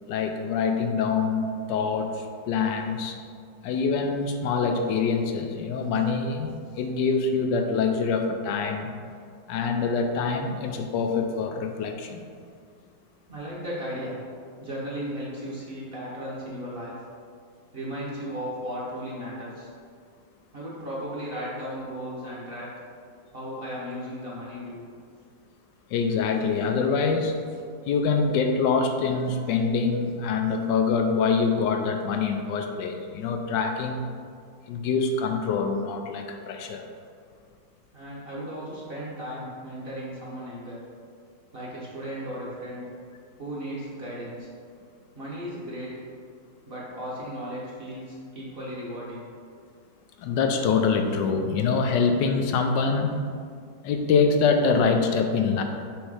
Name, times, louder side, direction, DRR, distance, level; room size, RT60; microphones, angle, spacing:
voice 1, 0.1-3.2 3.6-8.9 9.5-12.2 25.9-27.4 27.9-34.0 34.7-36.8 50.2-53.2 53.8-55.6, left 5 dB, 80° left, 5 dB, 1.2 m, -25 dB
voice 2, 3.0-3.3 13.3-14.2 14.6-17.0 17.7-19.7 20.5-22.7 23.3-24.8 37.9-40.8 41.5-42.8 43.4-44.5 45.1-45.9 46.6-49.3, equal, 35° right, -6 dB, 1.2 m, -35 dB
6.3 x 3.1 x 4.8 m, 2.1 s
omnidirectional pair, 1.9 m